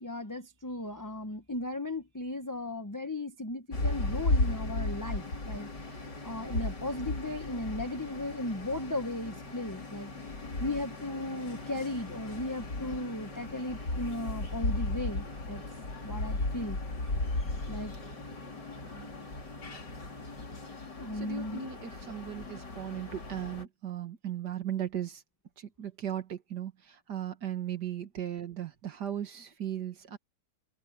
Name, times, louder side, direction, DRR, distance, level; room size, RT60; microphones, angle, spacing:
voice 1, 0.0-5.7 6.2-10.1 10.6-15.6 16.0-16.8 17.7-17.9 21.0-21.6, left 2 dB, 15° left, 0.8 m, -36 dB
sound 1, 3.7-23.6, left 2 dB, 80° left, 4.8 m, -36 dB
voice 2, 21.1-25.2 25.6-30.2, right 10 dB, 75° right, 2.3 m, -37 dB
omnidirectional pair, 1.8 m